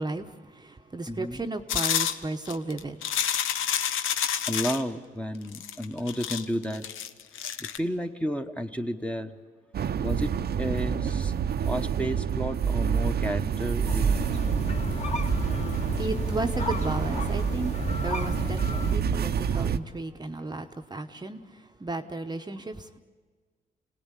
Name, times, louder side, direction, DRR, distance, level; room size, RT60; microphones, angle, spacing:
voice 1, 0.0-3.0 15.9-23.0, right 2 dB, 20° right, 5 dB, 1.0 m, -34 dB
voice 2, 1.1-1.4 4.5-6.9 7.6-9.3 10.0-11.3 11.6-14.3, equal, 5° left, 6 dB, 1.2 m, -32 dB
sound 1, 1.7-4.8 5.5-7.8, left 9 dB, 85° left, 1.0 m, -29 dB
sound 2, 9.7-19.8, right 7 dB, 50° right, 0.8 m, -28 dB
sound 3, 13.9-19.0, left 2 dB, 35° left, 2.2 m, -32 dB
26.5 x 17.5 x 10.0 m, 1.5 s
cardioid pair, 90°, 20 cm